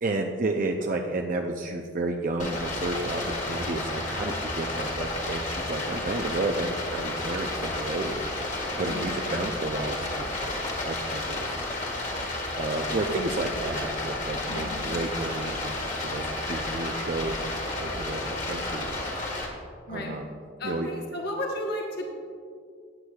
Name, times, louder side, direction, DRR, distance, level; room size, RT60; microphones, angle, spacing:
voice 1, 0.0-8.2 8.8-11.6 12.6-18.9 19.9-20.2 20.6-20.9, right 2 dB, 45° right, 2 dB, 0.5 m, -31 dB
Stream, 2.4-19.5, left 2 dB, 40° left, 1.6 m, -32 dB
voice 2, 19.9-20.2 20.6-22.1, left 1 dB, 55° left, 0 dB, 1.2 m, -33 dB
15.5 x 8.2 x 2.4 m, 2.2 s
head